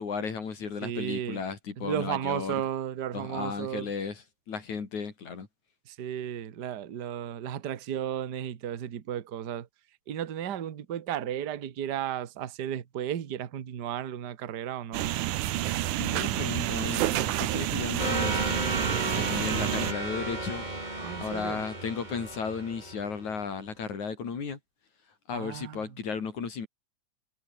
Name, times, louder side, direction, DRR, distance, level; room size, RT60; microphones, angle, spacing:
voice 1, 0.0-2.6 3.1-5.5 16.0-18.5 19.0-20.7 21.2-24.6 25.3-26.7, left 5 dB, 65° left, 4.8 m, -34 dB
voice 2, 0.8-1.4 1.8-3.9 5.8-9.7 10.1-15.1 21.0-21.7 25.3-25.8, right 10 dB, 45° right, 1.4 m, -34 dB
sound 1, 14.9-19.9, right 14 dB, 80° right, 2.4 m, -29 dB
sound 2, 18.0-23.4, right 2 dB, 15° right, 3.6 m, -33 dB
omnidirectional pair, 3.7 m